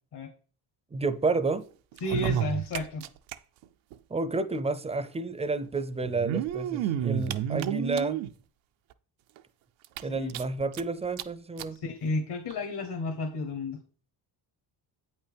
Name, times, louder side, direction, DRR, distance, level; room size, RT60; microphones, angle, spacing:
voice 1, 0.9-1.6 4.1-8.2 10.0-11.8, right 3 dB, 15° right, 0.4 m, -30 dB
eating and clucking a tasty meal, 1.9-3.4 3.6-3.7 3.9-4.0 5.1-5.2 6.0-8.3 8.9-9.0 9.4-9.5 9.8-10.8 11.2-11.3 11.6-11.7 12.5-12.6, right 11 dB, 85° right, 0.6 m, -30 dB
voice 2, 2.0-3.0 10.1-10.3 11.8-13.8, left 2 dB, 60° left, 1.1 m, -32 dB
8.1 x 5.7 x 3.4 m
cardioid pair, 100°, 45 cm